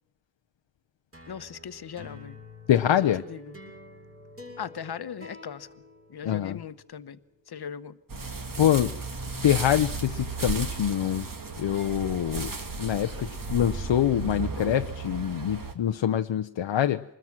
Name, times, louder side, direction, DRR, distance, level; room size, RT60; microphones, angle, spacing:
sound 1, 1.1-6.7, left 1 dB, 30° right, 7.2 m, -47 dB
voice 1, 1.3-2.4 2.9-3.6 4.6-5.7 6.1-7.2 7.5-8.0, left 8 dB, 55° left, 1.1 m, -39 dB
voice 2, 2.7-3.2 6.2-6.6 8.6-9.0 9.4-11.3 11.6-12.5 12.8-17.0, left 10 dB, 75° left, 0.8 m, -25 dB
sound 2, 8.1-15.7, right 4 dB, 45° right, 2.4 m, -34 dB
25.5 x 21.0 x 6.1 m
wide cardioid pair, 125°, 45 cm